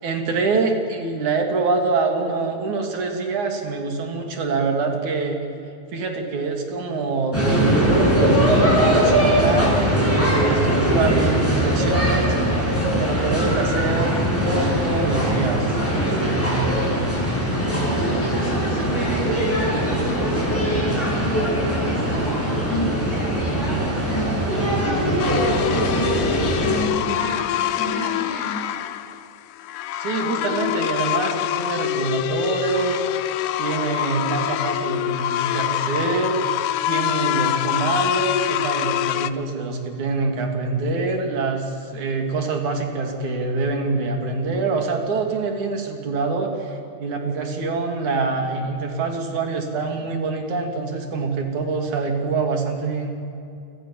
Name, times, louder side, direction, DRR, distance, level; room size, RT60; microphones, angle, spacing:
voice 1, 0.0-5.4 5.9-12.4 12.9-15.8 30.0-33.0 33.6-36.4 36.9-53.1, right 3 dB, 70° right, 3 dB, 4.3 m, -25 dB
sound 1, 7.3-26.8, equal, 5° left, 7.9 m, -21 dB
voice 2, 18.0-25.4 25.7-28.7, equal, 20° left, -7 dB, 6.4 m, -32 dB
sound 2, 25.2-39.3, left 13 dB, 85° left, 2.3 m, -25 dB
28.5 x 25.5 x 7.5 m, 2.7 s
omnidirectional pair, 3.6 m